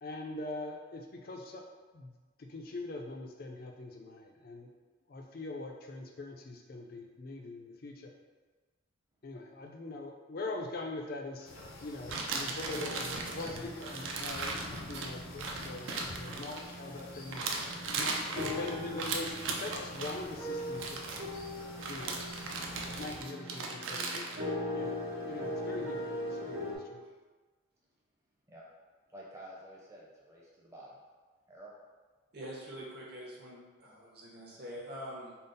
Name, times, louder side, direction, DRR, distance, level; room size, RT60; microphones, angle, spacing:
voice 1, 0.0-1.6 1.9-2.1 2.4-4.7 5.1-8.1 9.2-14.6 14.9-17.4 18.0-21.2 21.9-22.2 23.0-24.9 25.3-27.0, left 2 dB, 45° left, 2 dB, 0.4 m, -42 dB
sound 1, 11.5-23.2, left 2 dB, 85° left, 0.6 m, -48 dB
sound 2, 12.1-17.0 17.3-20.2 20.7-21.3 21.8-24.4, right 3 dB, 65° right, 0.4 m, -37 dB
sound 3, 12.6-26.8, left 1 dB, 90° right, 1.1 m, -41 dB
voice 2, 29.1-31.0 31.5-31.7, right 1 dB, 15° right, -5 dB, 0.6 m, -50 dB
voice 3, 32.3-35.4, equal, 50° right, -4 dB, 0.8 m, -45 dB
3.8 x 2.0 x 3.9 m, 1.4 s
head